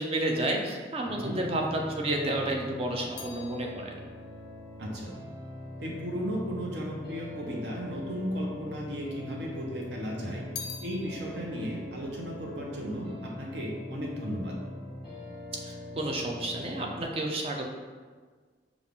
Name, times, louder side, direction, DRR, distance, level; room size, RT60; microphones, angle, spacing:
voice 1, 0.0-4.0 15.5-17.6, right 1 dB, 35° right, 1 dB, 0.5 m, -31 dB
sound 1, 1.0-17.0, left 1 dB, 5° right, 1.2 m, -43 dB
sound 2, 2.8-6.6 7.4-8.2 8.5-9.6 10.0-13.5 13.8-14.3, left 6 dB, 55° left, 0.4 m, -48 dB
voice 2, 4.8-5.1 5.8-10.4 10.8-14.6, equal, 65° right, -2 dB, 0.9 m, -35 dB
5.3 x 2.4 x 3.6 m, 1.5 s
head